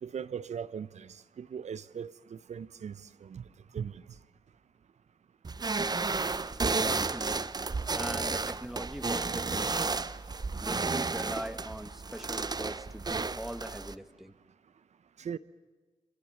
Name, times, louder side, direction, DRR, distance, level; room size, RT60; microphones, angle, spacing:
voice 1, 0.0-3.4 3.7-4.0 15.2-15.4, right 7 dB, 60° right, 0.8 m, -39 dB
sound 1, 5.4-13.9, right 4 dB, 30° right, 0.8 m, -32 dB
voice 2, 6.8-7.4 7.9-9.9 10.6-14.3, equal, ahead, 1.7 m, -41 dB
29.0 x 25.5 x 7.4 m
supercardioid pair, 50°, 13 cm